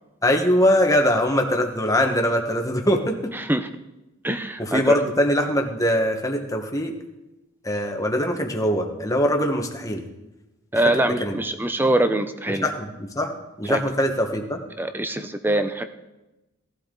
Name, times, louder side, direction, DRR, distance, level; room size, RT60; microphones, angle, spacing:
voice 1, 0.2-3.3 4.6-6.9 7.6-10.0 11.0-11.3 12.5-14.6, equal, 15° left, 3 dB, 1.3 m, -22 dB
voice 2, 3.4-3.7 4.2-5.0 10.7-12.7 13.7-13.8 14.8-15.8, right 1 dB, 10° right, 9 dB, 0.6 m, -23 dB
17.5 x 12.0 x 3.9 m, 1.0 s
head